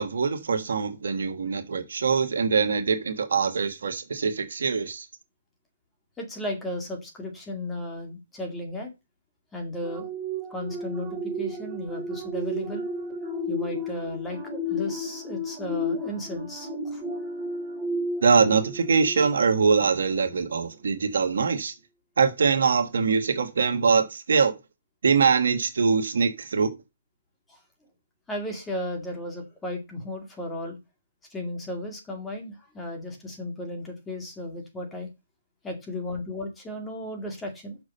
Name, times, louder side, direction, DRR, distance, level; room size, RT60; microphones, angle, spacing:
voice 1, 0.0-5.0 18.2-21.7 22.2-24.5 25.0-26.7, right 5 dB, 70° right, 1.5 m, -23 dB
voice 2, 6.2-8.9 9.5-10.1 10.5-12.8 13.5-17.0 27.5-27.6 28.3-30.8 31.3-35.1 35.6-37.8, left 1 dB, 10° left, 2.2 m, -35 dB
sound 1, 9.8-19.7 20.2-20.4, equal, 15° right, 4.7 m, -33 dB
6.3 x 6.1 x 5.5 m
hypercardioid pair, 150°, 0 cm